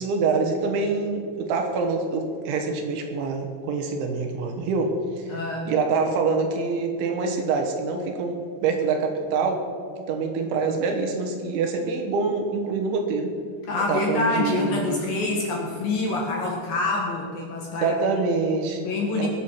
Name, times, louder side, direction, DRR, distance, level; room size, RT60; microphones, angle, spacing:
voice 1, 0.0-5.3 5.7-9.6 10.1-13.3 13.9-15.0 17.8-18.8 19.2-19.3, right 4 dB, 70° right, 4 dB, 3.6 m, -25 dB
voice 2, 5.3-5.7 13.7-18.2 18.8-19.3, left 2 dB, 60° left, -1 dB, 2.7 m, -26 dB
22.0 x 8.4 x 5.8 m, 2.2 s
omnidirectional pair, 5.8 m